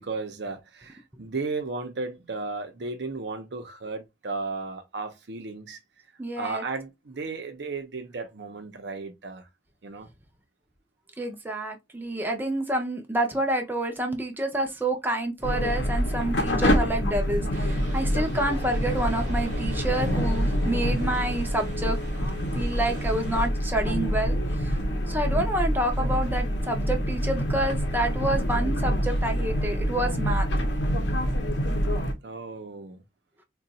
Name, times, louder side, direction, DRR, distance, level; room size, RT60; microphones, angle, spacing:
voice 1, 0.0-5.8 6.4-9.5 9.8-10.1 32.2-33.0, right 3 dB, 70° right, 0.7 m, -34 dB
voice 2, 6.2-6.6 11.2-22.0 22.5-24.7 25.1-30.5, right 1 dB, 10° right, 0.6 m, -28 dB
sound 1, 15.4-32.1, equal, 70° left, 0.8 m, -26 dB
sound 2, 17.5-23.5, equal, 45° right, 1.0 m, -36 dB
2.4 x 2.3 x 4.0 m
head